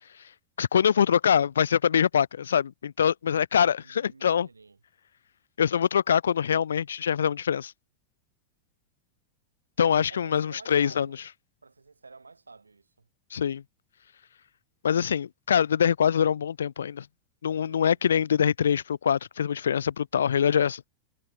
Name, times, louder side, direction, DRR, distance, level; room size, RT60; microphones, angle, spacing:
voice 1, 0.6-4.5 5.6-7.7 9.8-11.1 13.3-13.6 14.8-17.0 17.4-20.8, left 8 dB, 65° left, 0.5 m, -24 dB
voice 2, 3.8-4.8 9.8-11.2 11.6-13.1 17.7-18.0, right 4 dB, 80° right, 5.8 m, -51 dB
figure-of-eight pair, 90°, 0 cm